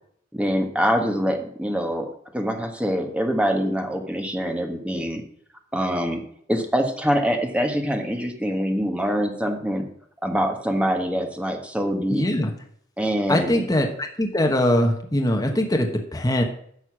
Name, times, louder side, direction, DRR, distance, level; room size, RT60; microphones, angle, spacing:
voice 1, 0.3-5.2 5.7-6.2 6.5-9.9 10.2-12.3 13.0-13.6, equal, 5° right, 4 dB, 1.5 m, -24 dB
voice 2, 12.1-12.5 13.3-16.4, left 1 dB, 20° left, 2 dB, 1.2 m, -22 dB
11.0 x 6.6 x 6.1 m, 0.64 s
head